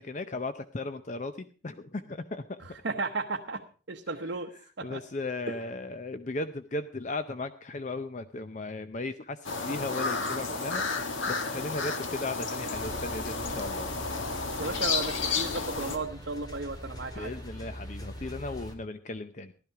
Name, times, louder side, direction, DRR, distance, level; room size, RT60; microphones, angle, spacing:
voice 1, 0.0-2.6 4.8-13.9 17.2-19.5, left 2 dB, 40° left, 11 dB, 0.6 m, -36 dB
voice 2, 2.8-3.6 3.9-4.5 4.8-5.0 5.5-5.6 14.6-17.3, right 3 dB, 65° right, 3 dB, 0.9 m, -34 dB
sound 1, 9.4-16.0, left 4 dB, 90° left, 1.7 m, -32 dB
sound 2, 12.7-18.7, equal, 20° left, 1.9 m, -42 dB
15.5 x 12.0 x 4.7 m, 0.38 s
head